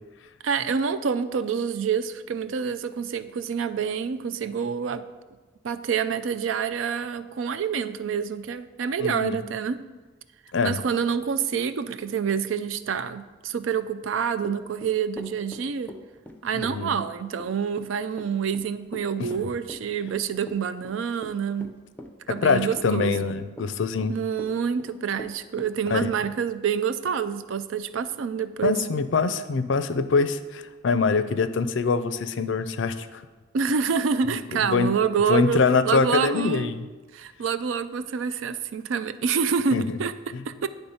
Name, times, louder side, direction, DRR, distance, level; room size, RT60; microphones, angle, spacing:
voice 1, 0.4-5.0 5.6-9.8 10.6-15.9 16.4-21.7 22.3-23.2 24.1-28.8 33.5-36.7 37.1-40.1 40.5-40.7, right 6 dB, 75° right, 12 dB, 0.4 m, -27 dB
voice 2, 9.0-9.4 10.5-10.8 16.5-17.0 19.2-19.3 22.4-24.1 25.9-26.1 28.6-33.2 34.3-34.9 35.3-36.9 39.7-39.8 40.3-40.4, left 4 dB, 65° left, 11 dB, 0.4 m, -24 dB
Run / Walk footsteps, 14.4-26.1, left 1 dB, 10° left, 0.5 m, -42 dB
10.0 x 3.4 x 5.6 m, 1.3 s
head